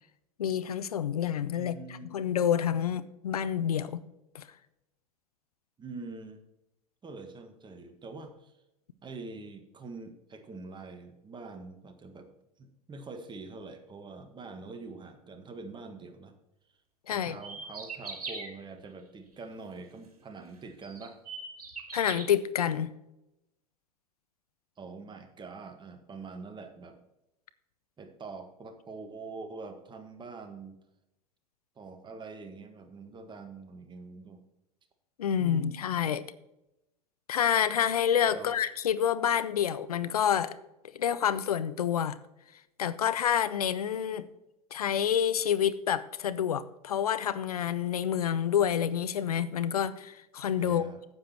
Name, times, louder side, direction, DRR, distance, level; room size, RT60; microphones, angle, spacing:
voice 1, 0.4-1.8 2.1-4.0 4.3-4.5 17.1-17.4 21.9-22.9 35.2-36.3 37.3-40.5 40.9-42.2 42.8-44.2 44.7-50.8, left 9 dB, 80° left, 15 dB, 0.6 m, -28 dB
voice 2, 1.5-2.1 5.8-6.5 7.0-8.6 9.0-16.3 17.1-21.2 24.8-27.0 28.0-30.8 31.8-34.4 35.4-35.8 38.3-38.6 50.5-51.0, right 3 dB, 25° right, 7 dB, 1.6 m, -44 dB
sound 1, 17.2-18.5 20.2-20.3 20.8-22.2, right 4 dB, 85° right, 2.5 m, -40 dB
9.7 x 7.9 x 4.4 m, 0.93 s
hypercardioid pair, 85°, 19 cm